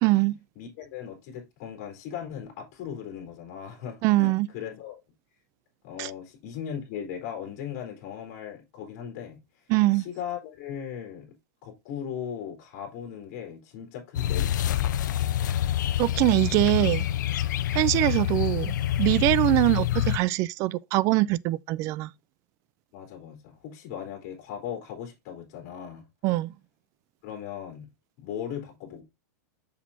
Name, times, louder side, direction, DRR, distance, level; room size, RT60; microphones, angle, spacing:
voice 1, 0.0-0.4 4.0-4.5 6.0-6.1 9.7-10.0 16.0-17.1 17.7-22.1 26.2-26.5, right 18 dB, 30° right, 0.3 m, -23 dB
voice 2, 0.6-5.0 5.8-9.4 9.9-11.4 11.6-15.0 22.9-26.0 27.2-27.9 28.2-29.0, left 8 dB, 45° left, 3.5 m, -38 dB
sound 1, 14.1-20.2, left 12 dB, 80° left, 0.7 m, -26 dB
7.3 x 6.3 x 2.7 m
supercardioid pair, 155°, 10 cm